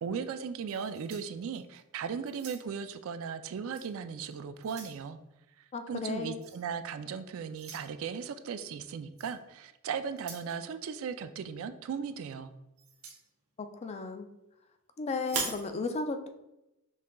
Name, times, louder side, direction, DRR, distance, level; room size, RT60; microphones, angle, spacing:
voice 1, 0.0-5.2 5.9-12.5, right 6 dB, 65° right, 10 dB, 0.3 m, -37 dB
sound 1, 0.7-1.8 2.3-2.9 3.7-3.9 4.3-5.0 6.4-6.6 7.5-7.9 9.2-9.4 10.1-10.5 12.8-13.2 15.2-15.7, right 4 dB, 85° right, 0.9 m, -40 dB
voice 2, 5.7-6.4 13.6-14.3 15.0-16.3, left 3 dB, 30° left, 7 dB, 0.4 m, -34 dB
5.5 x 3.7 x 2.3 m, 0.93 s
head